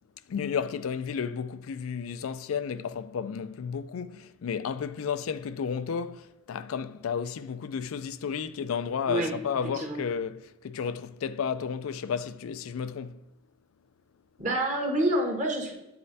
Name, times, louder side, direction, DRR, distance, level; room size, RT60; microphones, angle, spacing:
voice 1, 0.3-13.2, left 6 dB, 85° left, 0.4 m, -32 dB
voice 2, 14.4-15.7, right 1 dB, 35° right, 1.2 m, -27 dB
8.5 x 4.3 x 2.7 m
head